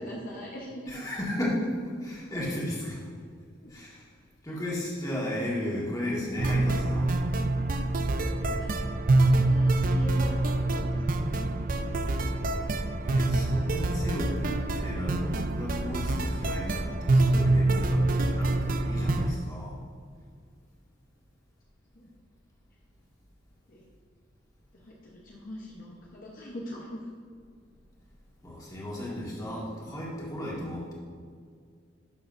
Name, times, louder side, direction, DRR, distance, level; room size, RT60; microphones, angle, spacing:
voice 1, 0.0-1.0 3.6-3.7 8.4-8.7 9.1-10.3 10.7-11.0 12.0-12.3 21.9-22.1 23.7-23.8 24.8-27.1, left 1 dB, 45° left, -3 dB, 1.0 m, -42 dB
voice 2, 0.9-3.1 3.7-4.1 4.4-7.1 13.0-19.8 28.4-30.9, left 1 dB, 20° left, -5 dB, 1.9 m, -34 dB
sound 1, 6.4-19.3, right 2 dB, 45° right, 0.5 m, -26 dB
11.5 x 6.7 x 2.6 m, 2.1 s
head